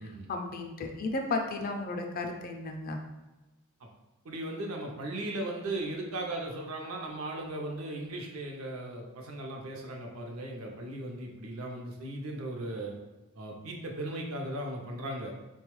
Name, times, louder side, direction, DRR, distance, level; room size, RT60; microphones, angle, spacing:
voice 1, 0.0-3.0, left 3 dB, 45° left, 4 dB, 0.4 m, -34 dB
voice 2, 4.2-12.9 13.4-15.4, right 1 dB, 85° right, 1 dB, 0.6 m, -37 dB
3.9 x 2.3 x 3.0 m, 1.1 s
head